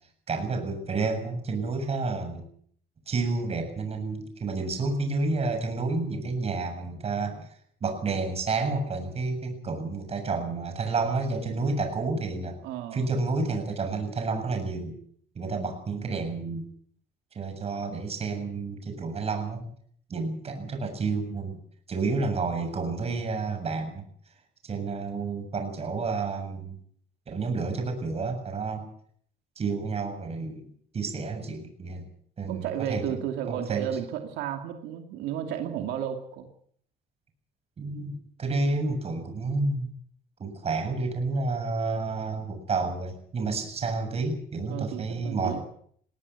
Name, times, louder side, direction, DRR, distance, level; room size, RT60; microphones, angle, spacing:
voice 1, 0.3-2.4 3.1-7.5 7.8-12.6 12.9-15.0 15.4-16.7 17.3-19.6 20.1-21.6 21.9-24.0 24.6-26.8 27.3-28.9 29.6-30.7 30.9-32.1 32.4-33.2 33.5-33.9 37.8-39.9 40.4-45.6, right 3 dB, 35° right, 6 dB, 7.3 m, -30 dB
voice 2, 12.6-13.1 32.5-36.5 44.7-45.6, right 9 dB, 90° right, 5 dB, 2.5 m, -33 dB
21.0 x 18.5 x 8.3 m, 0.62 s
cardioid pair, 110°, 17 cm